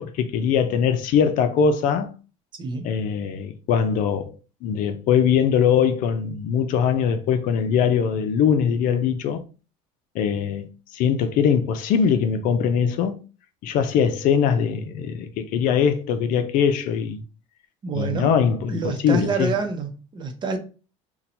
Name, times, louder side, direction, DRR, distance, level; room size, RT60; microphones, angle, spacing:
voice 1, 0.0-2.1 2.8-4.4 4.6-9.4 10.1-13.2 13.6-17.2 17.9-19.5, left 7 dB, 65° left, 0.5 m, -21 dB
voice 2, 17.8-18.3 18.7-20.6, right 4 dB, 30° right, 0.7 m, -27 dB
2.8 x 2.2 x 4.1 m
cardioid pair, 115°, 15 cm